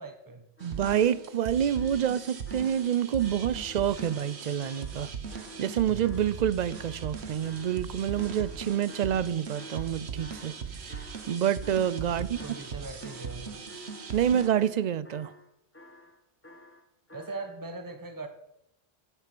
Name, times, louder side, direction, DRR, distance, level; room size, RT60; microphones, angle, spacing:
voice 1, 0.0-0.5 12.1-13.6 17.1-18.3, right 3 dB, 20° right, 1.2 m, -40 dB
sound 1, 0.6-1.1 1.8-5.8 6.0-12.1 12.3-17.5, left 1 dB, 10° left, 1.0 m, -51 dB
voice 2, 0.6-5.1 5.6-12.4 14.1-15.3, right 9 dB, 55° right, 0.5 m, -28 dB
sound 2, 0.6-14.5, right 6 dB, 70° right, 1.4 m, -39 dB
11.5 x 9.0 x 6.1 m
omnidirectional pair, 1.1 m